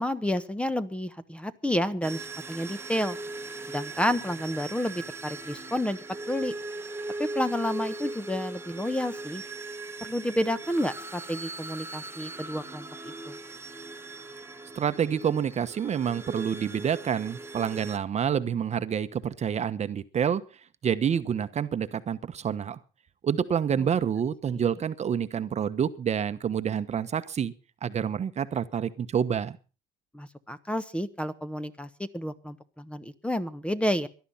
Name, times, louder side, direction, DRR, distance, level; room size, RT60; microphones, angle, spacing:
voice 1, 0.0-2.2 2.5-3.2 3.7-6.0 6.3-6.5 7.2-9.4 10.0-12.9 13.3-13.4 23.8-23.9 24.5-24.6 30.1-34.1, left 1 dB, 5° left, 13 dB, 1.2 m, -30 dB
sound 1, 2.0-18.0, right 2 dB, 15° right, 1.4 m, -39 dB
voice 2, 14.7-20.4 20.8-22.8 23.2-27.5 27.8-29.6, right 8 dB, 40° right, 12 dB, 1.1 m, -28 dB
18.0 x 12.0 x 5.6 m, 0.36 s
cardioid pair, 110°, 17 cm